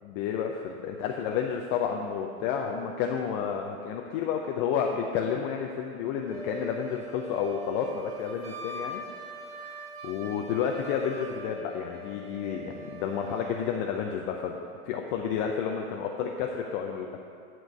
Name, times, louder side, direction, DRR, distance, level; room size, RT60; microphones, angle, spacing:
voice 1, 0.0-14.6 14.8-17.2, left 7 dB, 35° left, 2 dB, 0.7 m, -31 dB
Wind instrument woodwind instrument, 6.3-13.7, right 1 dB, 80° right, 1.3 m, -42 dB
10.5 x 4.6 x 7.7 m, 2.3 s
hypercardioid pair, 105°, 45 cm